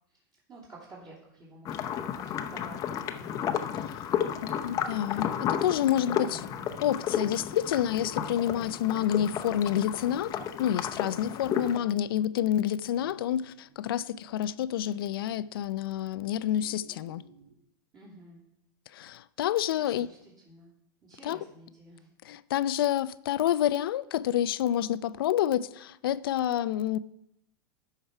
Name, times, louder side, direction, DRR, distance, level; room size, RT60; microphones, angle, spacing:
voice 1, 0.5-2.8 3.1-4.8 5.9-6.4 11.2-11.5 17.9-18.4 19.7-20.7 21.0-22.1, right 2 dB, 30° right, 2.8 m, -51 dB
sound 1, 1.7-11.8, left 9 dB, 30° left, 0.7 m, -33 dB
voice 2, 4.3-6.4 6.8-10.3 10.6-17.2 18.9-20.1 21.2-21.4 22.3-27.0, left 11 dB, 80° left, 0.5 m, -28 dB
sound 2, 5.8-17.5, right 5 dB, 90° right, 1.4 m, -54 dB
12.0 x 4.7 x 5.7 m
supercardioid pair, 135°, 12 cm